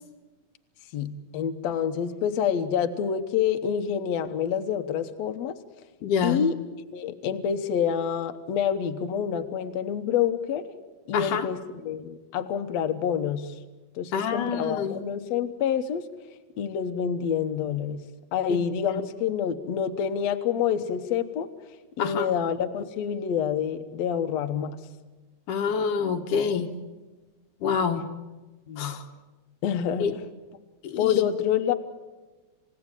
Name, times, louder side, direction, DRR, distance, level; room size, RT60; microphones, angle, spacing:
voice 1, 0.9-5.6 6.2-6.6 6.9-10.6 11.1-13.5 14.0-16.0 16.6-18.0 18.3-21.5 22.0-24.7 28.7-29.0 29.6-30.1 31.0-31.7, left 8 dB, 65° left, 9 dB, 2.2 m, -27 dB
voice 2, 6.0-6.4 11.1-11.5 14.1-15.0 18.5-18.6 18.9-19.0 22.0-22.3 25.5-26.7 27.6-28.0 28.8-29.0 30.0-30.1 30.8-31.2, left 6 dB, 80° left, 4 dB, 2.9 m, -27 dB
28.5 x 17.0 x 9.0 m, 1.2 s
omnidirectional pair, 3.6 m